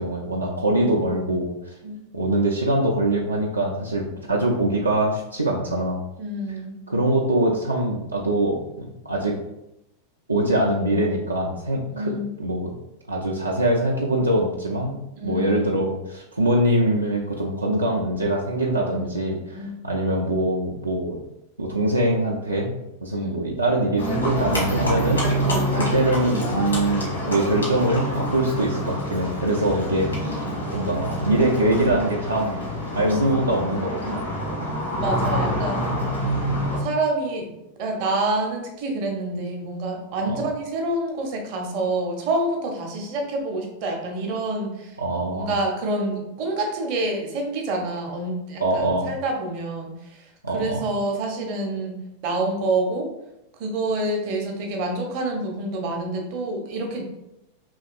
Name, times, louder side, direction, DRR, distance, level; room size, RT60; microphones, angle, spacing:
voice 1, 0.0-1.5 2.1-6.0 6.9-9.3 10.3-12.1 12.4-12.7 13.1-15.0 15.2-21.2 21.6-30.4 30.7-32.6 32.9-34.2 35.3-35.4 36.1-36.2 40.2-40.4 45.0-45.5 48.6-49.1 50.4-50.8, right 1 dB, 80° right, -2 dB, 0.3 m, -23 dB
voice 2, 6.2-6.7 11.9-12.3 15.2-15.7 18.9-19.8 23.1-23.4 30.2-30.3 33.0-33.5 34.0-34.2 35.0-35.9 36.7-37.5 37.8-45.0 45.3-49.9 50.5-52.0 52.2-53.1 53.6-57.0, right 2 dB, 45° right, 2 dB, 0.6 m, -27 dB
Livestock farm animals working animals, 24.0-36.8, equal, 75° left, 1.1 m, -26 dB
2.9 x 2.8 x 2.4 m, 0.86 s
figure-of-eight pair, 90°, 0 cm